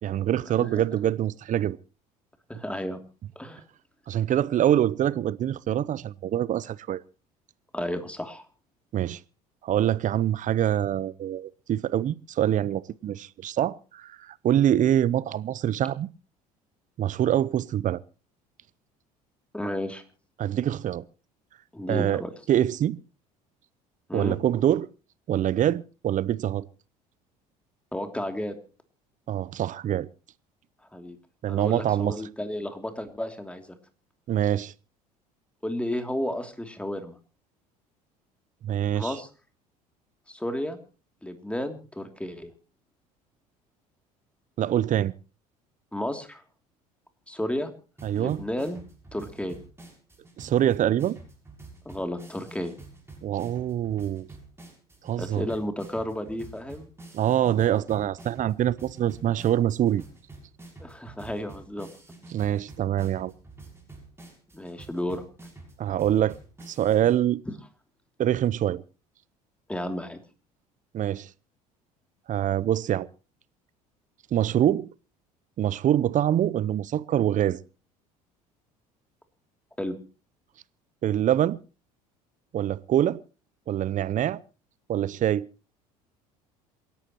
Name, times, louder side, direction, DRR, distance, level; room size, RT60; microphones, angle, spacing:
voice 1, 0.0-1.8 4.1-7.0 8.9-9.2 9.6-16.1 17.0-18.0 20.4-21.1 21.9-22.2 22.5-23.0 24.1-24.9 25.3-26.7 29.3-30.1 31.4-32.2 34.3-34.7 38.6-39.2 44.6-45.1 48.0-48.4 50.4-51.2 53.2-54.3 55.0-55.5 57.1-60.0 62.3-63.3 65.8-66.4 66.7-67.4 68.2-68.8 70.9-71.3 72.3-73.1 74.3-74.9 75.6-77.6 81.0-81.6 82.5-83.2 83.7-84.4 84.9-85.5, right 11 dB, 40° right, 0.7 m, -25 dB
voice 2, 2.5-3.0 3.4-3.6 7.7-8.4 19.5-20.0 21.7-22.3 24.1-24.4 27.9-28.6 30.9-31.2 31.5-33.8 35.6-37.2 38.9-39.3 40.3-40.8 41.2-42.5 45.9-46.4 47.3-47.7 48.1-48.8 49.1-49.6 51.8-52.7 55.2-56.9 60.8-61.9 64.5-65.2 69.7-70.2 79.8-80.0, left 1 dB, 5° left, 2.9 m, -32 dB
sound 1, 48.0-67.2, right 2 dB, 15° right, 6.8 m, -48 dB
27.5 x 11.5 x 3.0 m
hypercardioid pair, 65°, 19 cm